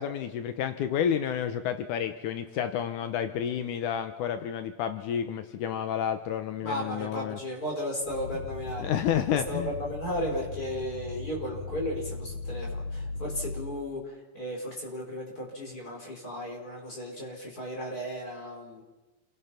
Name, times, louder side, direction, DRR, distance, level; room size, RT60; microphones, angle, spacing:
voice 1, 0.0-7.4 8.8-9.7, left 9 dB, 80° left, 8 dB, 2.4 m, -30 dB
voice 2, 6.6-8.9 9.3-18.8, equal, 25° left, -1 dB, 5.6 m, -35 dB
sound 1, 8.0-13.8, left 3 dB, 60° left, 2.5 m, -38 dB
29.0 x 18.0 x 5.9 m, 1.2 s
omnidirectional pair, 3.7 m